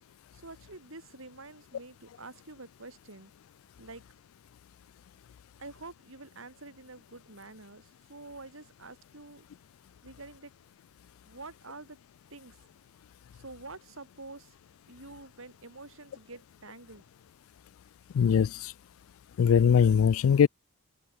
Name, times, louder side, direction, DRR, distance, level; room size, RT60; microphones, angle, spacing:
voice 1, 0.3-3.3 3.8-4.0 5.6-9.5 10.0-10.5 11.2-12.0 12.3-12.6 13.3-14.5 14.9-17.0, right 3 dB, 65° right, 3.6 m, -47 dB
voice 2, 18.1-18.7 19.4-20.5, left 7 dB, 70° left, 0.3 m, -21 dB
head